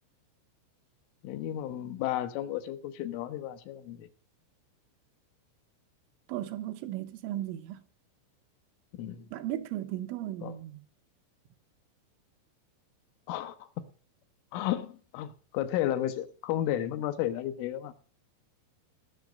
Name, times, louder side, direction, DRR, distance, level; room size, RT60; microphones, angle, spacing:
voice 1, 1.2-4.1 8.9-9.3 10.4-10.6 13.3-13.7 14.5-17.9, left 12 dB, 85° left, 3.4 m, -33 dB
voice 2, 6.3-7.8 9.3-10.8, right 13 dB, 85° right, 3.4 m, -36 dB
19.5 x 6.5 x 5.1 m
omnidirectional pair, 5.6 m